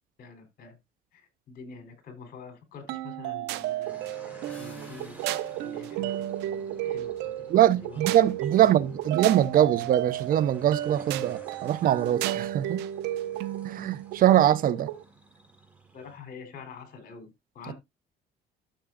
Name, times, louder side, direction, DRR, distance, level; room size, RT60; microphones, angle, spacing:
voice 1, 0.2-0.8 1.1-8.3 8.6-8.7 15.9-17.7, left 5 dB, 60° left, 4.0 m, -47 dB
sound 1, 2.9-15.0, right 13 dB, 90° right, 0.7 m, -33 dB
sound 2, 3.8-16.2, right 3 dB, 10° right, 4.0 m, -53 dB
sound 3, 4.5-7.1, left 1 dB, 10° left, 7.0 m, -57 dB
voice 2, 7.5-12.8 13.6-14.9, right 11 dB, 55° right, 0.7 m, -23 dB
13.0 x 6.8 x 2.5 m
cardioid pair, 110°, 17 cm